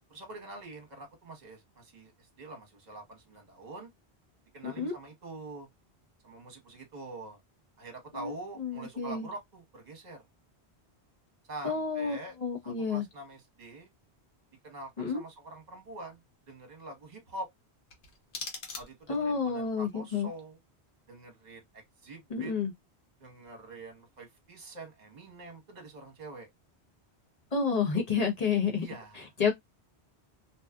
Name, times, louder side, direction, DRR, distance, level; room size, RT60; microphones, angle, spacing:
voice 1, 0.1-3.9 4.5-5.7 6.2-7.4 7.8-10.2 11.5-12.3 12.6-13.9 14.6-16.2 16.5-17.5 18.7-20.6 21.1-22.5 23.2-26.5 28.8-29.3, right 2 dB, 40° right, 1.1 m, -45 dB
voice 2, 4.6-4.9 8.1-8.3 8.6-9.3 11.6-13.0 15.0-15.2 19.1-20.3 22.3-22.7 27.5-28.8 29.2-29.5, left 5 dB, 40° left, 0.9 m, -30 dB
sound 1, 17.9-19.3, left 4 dB, 80° left, 1.1 m, -42 dB
2.6 x 2.3 x 2.3 m
omnidirectional pair, 1.1 m